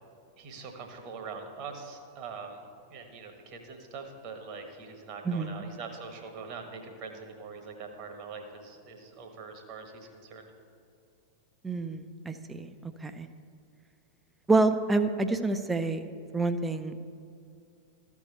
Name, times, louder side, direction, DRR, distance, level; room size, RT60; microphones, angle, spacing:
voice 1, 0.4-10.5, right 5 dB, 40° right, 4 dB, 1.4 m, -43 dB
voice 2, 5.3-5.6 11.6-13.3 14.5-16.0 16.3-16.9, right 3 dB, 10° right, 9 dB, 0.6 m, -28 dB
13.5 x 4.6 x 6.8 m, 2.5 s
figure-of-eight pair, 90°, 0 cm